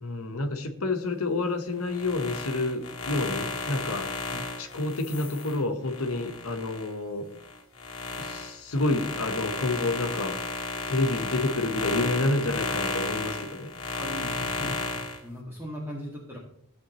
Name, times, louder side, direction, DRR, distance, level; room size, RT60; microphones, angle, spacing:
voice 1, 0.0-4.1 4.6-7.3 8.1-10.4 10.9-13.7, left 2 dB, 85° left, 5 dB, 1.4 m, -29 dB
sound 1, 1.8-6.9 7.4-15.2, left 3 dB, 65° left, 1.6 m, -33 dB
voice 2, 13.9-16.4, equal, 10° right, -4 dB, 2.1 m, -38 dB
14.5 x 7.9 x 3.1 m, 0.70 s
head